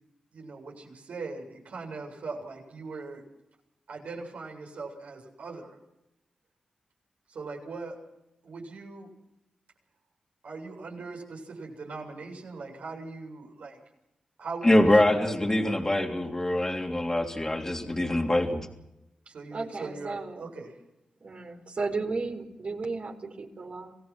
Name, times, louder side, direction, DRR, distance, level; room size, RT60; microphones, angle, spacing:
voice 1, 0.3-3.2 3.9-5.8 7.3-8.0 8.4-9.1 10.4-13.8 14.4-16.0 19.3-20.8, right 3 dB, 75° right, 0 dB, 7.7 m, -40 dB
voice 2, 14.6-18.7, left 1 dB, 20° left, 0 dB, 3.3 m, -24 dB
voice 3, 19.5-20.4 21.2-23.9, right 3 dB, 55° right, 3 dB, 4.5 m, -34 dB
27.5 x 17.0 x 6.1 m, 0.88 s
cardioid pair, 50°, 2 cm